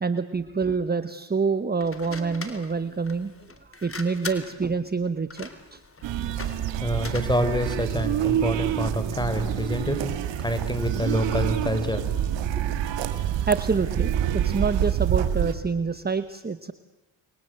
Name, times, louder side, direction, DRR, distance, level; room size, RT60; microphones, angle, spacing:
voice 1, 0.0-3.3 3.8-5.8 12.5-12.8 13.5-16.7, right 5 dB, 20° right, 12 dB, 1.2 m, -27 dB
sound 1, 1.8-8.1, left 3 dB, 30° left, 3.7 m, -41 dB
sound 2, 6.0-15.5, right 10 dB, 80° right, 2.0 m, -27 dB
voice 2, 6.8-10.0 10.4-12.6, equal, 10° left, 10 dB, 4.7 m, -27 dB
29.0 x 22.5 x 8.0 m, 1.0 s
supercardioid pair, 65°, 44 cm